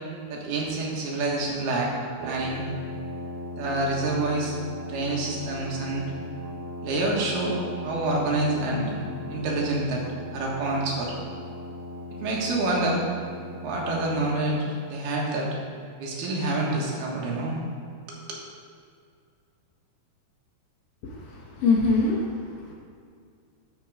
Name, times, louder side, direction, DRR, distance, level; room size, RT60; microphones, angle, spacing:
voice 1, 0.3-2.0 2.2-2.7 3.5-4.6 4.9-6.1 6.8-7.6 7.8-8.9 9.3-10.0 10.3-11.1 12.2-13.0 13.6-15.5 16.0-17.6 18.1-18.4, right 2 dB, 85° right, -3 dB, 3.5 m, -27 dB
Brass instrument, 2.2-14.5, left 1 dB, 65° right, 2.6 m, -38 dB
voice 2, 21.0-22.7, left 3 dB, 85° left, -3 dB, 1.3 m, -25 dB
12.5 x 5.2 x 4.9 m, 2.3 s
omnidirectional pair, 4.4 m